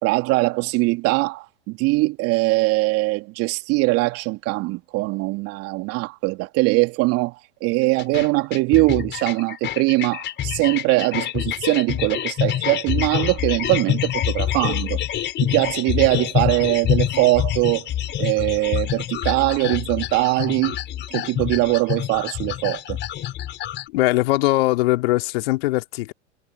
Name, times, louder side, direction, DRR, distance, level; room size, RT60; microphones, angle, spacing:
voice 1, 0.0-15.0 15.4-17.9 18.2-20.8 21.1-23.0, right 23 dB, 45° right, 3.1 m, -21 dB
sound 1, 8.0-23.9, left 11 dB, 30° left, 4.7 m, -26 dB
voice 2, 23.9-26.1, left 19 dB, 55° left, 2.5 m, -20 dB
hypercardioid pair, 100°, 35 cm